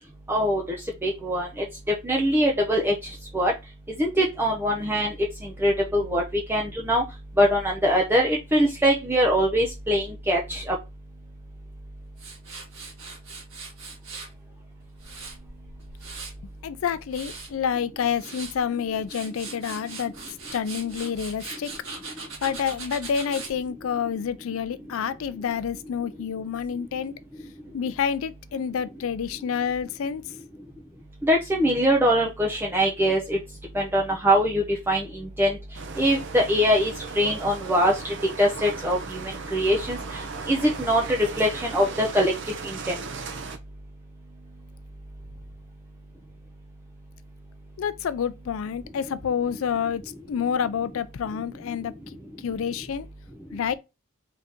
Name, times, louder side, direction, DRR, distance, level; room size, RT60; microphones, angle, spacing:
voice 1, 0.3-0.6 1.0-1.5 2.0-2.9 3.3-3.5 4.0-5.1 5.6-6.2 6.5-7.0 7.4-10.7 31.2-33.4 33.7-35.6 36.0-39.2 39.5-40.0 40.5-42.3 42.6-43.0, equal, 10° right, 0.5 m, -22 dB
Tools, 12.2-14.3 14.8-16.5 16.9-17.5 18.0-18.6 18.9-23.5, right 4 dB, 85° right, 1.7 m, -40 dB
voice 2, 16.6-20.1 20.5-21.7 22.4-27.1 27.7-30.2 47.8-50.0 50.3-51.9 52.4-53.1 53.5-53.7, left 7 dB, 70° left, 0.4 m, -28 dB
sound 1, 35.7-43.6, right 4 dB, 55° right, 0.5 m, -37 dB
3.8 x 2.7 x 3.5 m
head